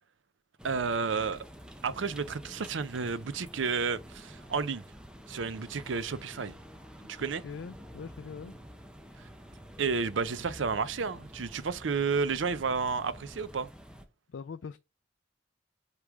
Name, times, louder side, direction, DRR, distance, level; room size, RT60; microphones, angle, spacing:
sound 1, 0.6-14.0, equal, 5° right, 0.7 m, -49 dB
voice 1, 0.6-1.4 1.8-4.8 5.3-6.6 7.1-7.4 9.8-13.7, right 5 dB, 85° right, 0.6 m, -31 dB
voice 2, 7.4-8.5 14.3-14.8, left 5 dB, 80° left, 0.4 m, -42 dB
8.2 x 3.3 x 3.6 m
head